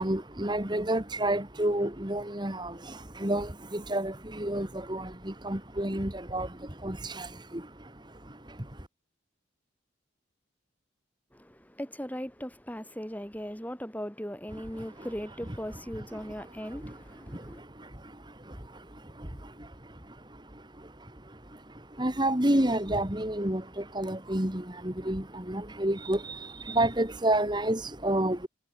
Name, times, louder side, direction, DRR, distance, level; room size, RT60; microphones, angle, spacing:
voice 1, 0.0-8.9 14.8-14.9 16.1-16.2 16.6-17.0 17.3-28.5, right 1 dB, 25° right, 2.4 m, -31 dB
voice 2, 11.3-17.6, equal, 10° left, 8.0 m, -38 dB
head